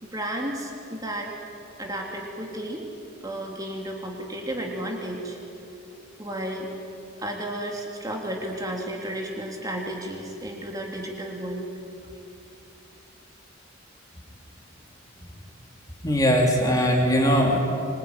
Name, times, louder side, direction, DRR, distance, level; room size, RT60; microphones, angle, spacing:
voice 1, 0.0-1.3 1.8-2.9 3.2-5.4 6.2-6.7 7.2-11.7, right 1 dB, 15° right, 0 dB, 3.1 m, -33 dB
voice 2, 16.0-17.6, equal, 15° left, 1 dB, 2.8 m, -20 dB
25.5 x 21.0 x 9.8 m, 2.8 s
head